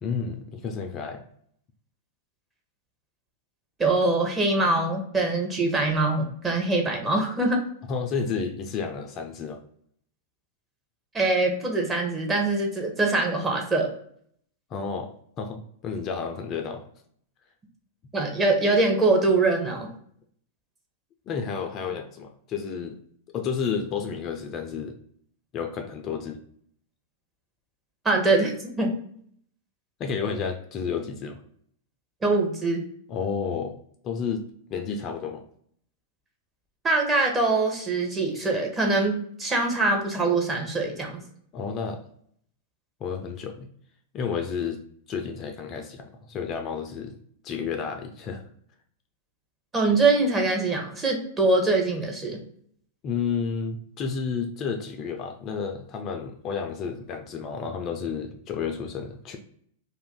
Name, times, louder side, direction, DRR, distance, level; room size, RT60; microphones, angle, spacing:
voice 1, 0.0-1.2 7.9-9.6 14.7-16.8 21.3-23.0 23.3-25.0 25.5-26.4 30.0-31.4 33.1-35.4 41.5-42.0 43.0-43.7 44.1-44.8 45.1-47.1 47.4-48.4 53.0-59.4, left 6 dB, 35° left, 5 dB, 0.4 m, -31 dB
voice 2, 3.8-7.6 11.1-13.9 18.1-19.9 28.0-28.9 32.2-32.8 36.8-41.2 49.7-52.4, right 2 dB, 20° right, 0 dB, 0.8 m, -23 dB
2.6 x 2.4 x 3.6 m, 0.63 s
figure-of-eight pair, 95°, 0 cm